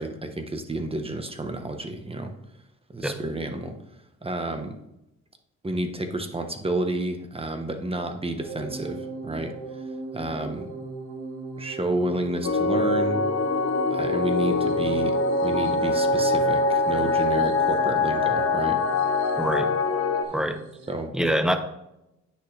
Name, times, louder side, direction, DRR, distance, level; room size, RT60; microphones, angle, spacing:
voice 1, 0.0-2.3 2.9-3.7 4.2-4.7 5.6-9.5 10.1-10.7 11.6-13.2 13.9-15.2 15.4-18.8 20.9-21.1, right 2 dB, 20° right, 6 dB, 1.2 m, -30 dB
sound 1, 8.4-20.9, right 3 dB, 85° right, 1.6 m, -38 dB
sound 2, 12.4-20.2, left 3 dB, 50° left, 1.1 m, -23 dB
voice 2, 19.4-19.7 20.3-20.6 21.1-21.6, equal, ahead, 8 dB, 0.9 m, -24 dB
9.7 x 6.1 x 3.3 m, 0.86 s
cardioid pair, 85°, 29 cm